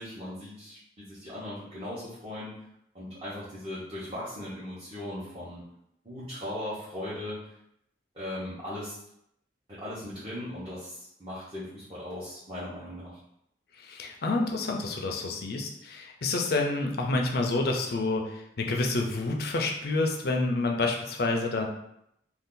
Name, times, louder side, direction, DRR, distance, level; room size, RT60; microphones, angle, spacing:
voice 1, 0.0-2.5 2.9-5.6 6.0-7.4 8.1-8.9 9.7-13.2, left 1 dB, 30° right, -11 dB, 0.9 m, -38 dB
voice 2, 13.7-21.7, left 2 dB, 60° left, 2 dB, 0.5 m, -28 dB
2.6 x 2.4 x 3.7 m, 0.77 s
head